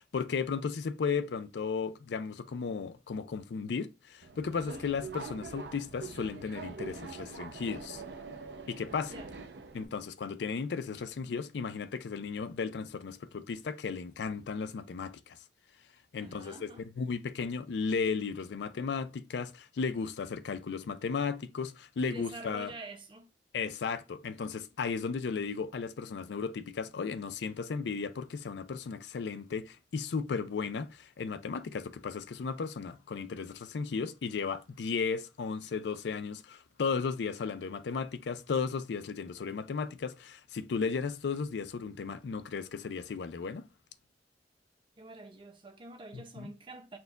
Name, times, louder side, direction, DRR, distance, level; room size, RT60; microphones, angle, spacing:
voice 1, 0.0-8.0 8.7-9.1 9.7-15.4 16.1-22.7 23.5-43.7 46.1-46.5, left 5 dB, 80° left, 0.4 m, -35 dB
Subway metro underground, 4.2-9.9, right 4 dB, 75° right, 0.5 m, -44 dB
voice 2, 16.2-16.8 22.0-23.3 45.0-47.0, right 2 dB, 30° right, 0.6 m, -47 dB
4.4 x 2.3 x 3.8 m
head